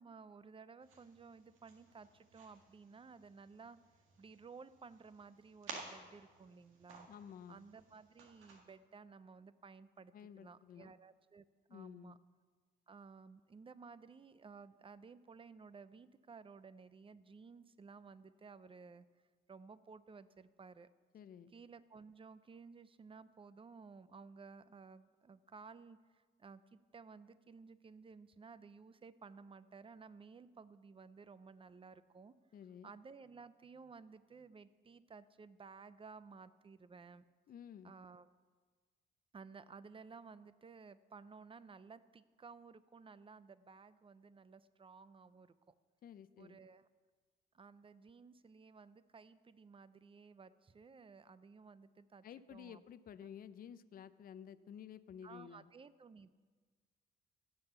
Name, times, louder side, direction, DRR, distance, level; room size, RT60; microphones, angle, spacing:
voice 1, 0.0-3.8 4.2-7.1 7.5-12.2 12.9-19.1 19.5-20.9 21.5-32.3 32.8-37.2 37.8-38.3 39.3-45.7 46.4-46.9 47.5-52.2 52.5-52.8 53.2-53.3 55.2-56.3, right 5 dB, 25° right, 15 dB, 0.5 m, -56 dB
sound 1, 0.8-8.6, right 4 dB, 90° right, 1.8 m, -55 dB
voice 2, 7.1-7.6 10.1-10.9 11.7-12.1 21.1-21.5 32.5-32.9 37.5-37.9 46.0-46.6 52.2-55.7, left 8 dB, 50° left, 14 dB, 0.5 m, -53 dB
16.0 x 5.6 x 6.8 m, 1.5 s
cardioid pair, 90°, 20 cm